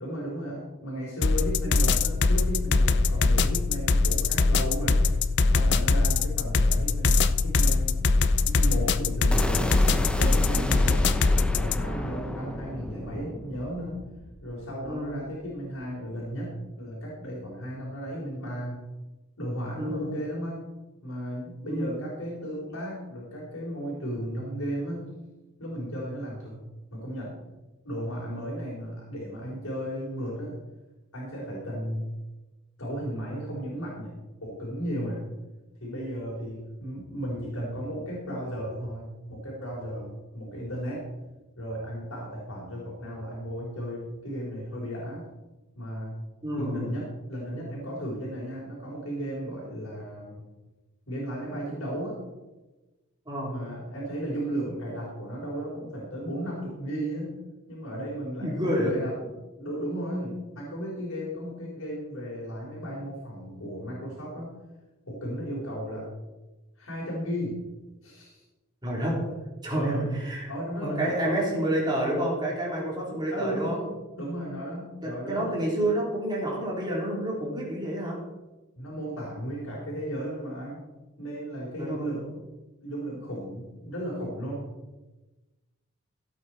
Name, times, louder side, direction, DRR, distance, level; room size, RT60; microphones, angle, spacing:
voice 1, 0.0-5.1 5.5-8.1 8.4-11.0 11.5-14.0 14.4-18.9 19.4-20.7 21.0-25.0 25.6-26.6 26.9-27.4 27.8-30.5 31.1-32.1 32.8-34.1 34.4-35.2 35.8-41.0 41.6-45.2 45.8-46.2 46.5-50.4 51.1-52.2 53.4-57.4 57.7-59.3 59.6-64.5 65.1-66.1 66.8-67.6 68.0-68.4 69.7-70.2 70.5-71.3 73.3-75.7 78.8-80.9 81.2-82.4 82.8-84.7, equal, 85° left, -5 dB, 3.9 m, -35 dB
sound 1, 1.2-11.9, left 3 dB, 55° left, 0.6 m, -22 dB
sound 2, 9.3-15.3, equal, 5° left, 0.8 m, -33 dB
voice 2, 19.8-20.1 21.7-21.9 46.4-46.9 47.5-47.6 53.3-53.5 58.4-59.0 68.8-69.3 69.6-70.5 70.8-73.8 75.0-78.2 81.8-82.2, right 1 dB, 20° right, -3 dB, 3.6 m, -29 dB
16.0 x 8.3 x 4.3 m, 1.1 s
head